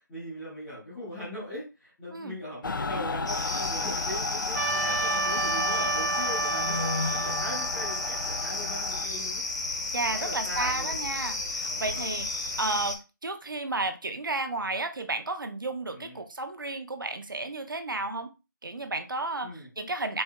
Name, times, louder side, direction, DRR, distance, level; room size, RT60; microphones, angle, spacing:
voice 1, 0.1-9.4 10.0-10.9 11.6-12.0 15.9-16.2 19.4-19.7, equal, 5° left, 0.4 m, -40 dB
Mechanical fan, 2.6-9.1, left 3 dB, 80° left, 0.4 m, -34 dB
sound 1, 3.3-13.0, left 2 dB, 55° left, 0.8 m, -33 dB
Trumpet, 4.6-9.0, right 3 dB, 55° right, 0.7 m, -31 dB
voice 2, 9.9-12.3 12.6-18.3 18.6-20.2, right 2 dB, 85° right, 0.8 m, -32 dB
4.4 x 2.8 x 2.2 m
figure-of-eight pair, 170°, 11 cm